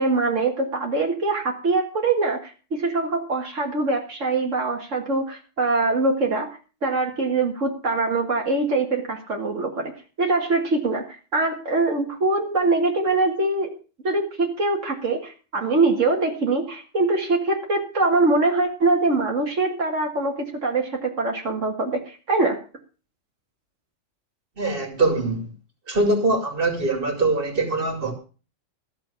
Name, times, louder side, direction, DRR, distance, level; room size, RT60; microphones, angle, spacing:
voice 1, 0.0-9.9 10.2-13.7 14.0-22.6, right 3 dB, 75° right, 1 dB, 2.2 m, -23 dB
voice 2, 24.6-25.5 25.9-28.1, right 2 dB, 45° right, 4 dB, 2.7 m, -23 dB
13.5 x 7.0 x 6.9 m, 0.36 s
omnidirectional pair, 1.3 m